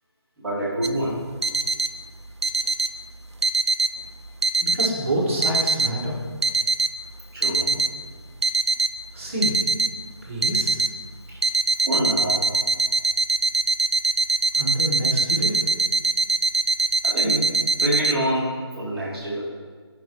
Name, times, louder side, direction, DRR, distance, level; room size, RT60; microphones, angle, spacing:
voice 1, 0.4-1.2 7.3-7.7 11.9-12.5 17.0-19.4, right 1 dB, 5° right, -15 dB, 2.3 m, -26 dB
sound 1, 0.8-18.1, right 3 dB, 80° right, 0.4 m, -23 dB
voice 2, 4.6-6.1 9.1-9.6 10.2-10.8 14.5-15.6, right 1 dB, 30° right, -5 dB, 1.8 m, -27 dB
10.5 x 5.9 x 3.1 m, 1.5 s
figure-of-eight pair, 155°, 14 cm